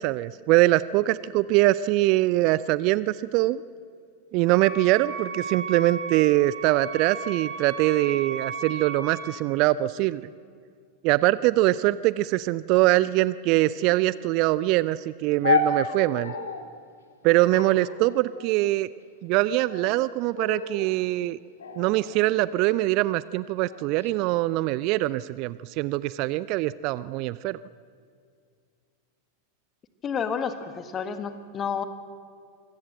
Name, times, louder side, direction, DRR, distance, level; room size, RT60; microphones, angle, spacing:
voice 1, 0.0-3.6 4.3-10.2 11.0-16.3 17.2-18.9 19.2-21.4 21.7-27.6, right 17 dB, 40° right, 18 dB, 0.5 m, -23 dB
Wind instrument woodwind instrument, 4.4-9.4, right 4 dB, 60° right, 6.3 m, -35 dB
sound 1, 15.4-16.7 17.5-18.7 19.5-20.0 20.3-20.9 21.6-22.9 23.7-24.1, left 4 dB, 70° left, 2.1 m, -30 dB
voice 2, 30.0-31.8, left 7 dB, 25° left, 10 dB, 1.7 m, -30 dB
25.0 x 16.5 x 7.9 m, 2.2 s
figure-of-eight pair, 90°, 0 cm